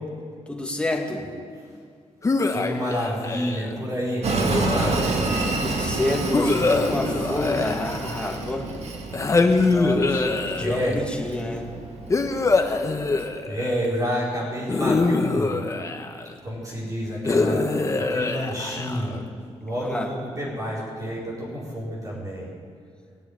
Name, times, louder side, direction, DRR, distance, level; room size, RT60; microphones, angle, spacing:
voice 1, 0.5-1.3 5.6-8.7 9.6-11.7 19.8-20.1, left 2 dB, 10° left, 0 dB, 2.1 m, -29 dB
sound 1, 2.2-3.8 4.5-5.4 6.3-8.5 9.1-11.0 12.1-13.9 14.7-16.3 17.3-19.2, left 3 dB, 25° left, 1.0 m, -24 dB
voice 2, 2.5-5.1 10.6-11.1 13.5-15.6 16.4-19.2 19.6-22.5, equal, 30° right, -7 dB, 4.6 m, -29 dB
Train, 4.2-13.2, right 3 dB, 60° right, 2.1 m, -29 dB
18.0 x 7.7 x 8.9 m, 2.2 s
cardioid pair, 115°, 12 cm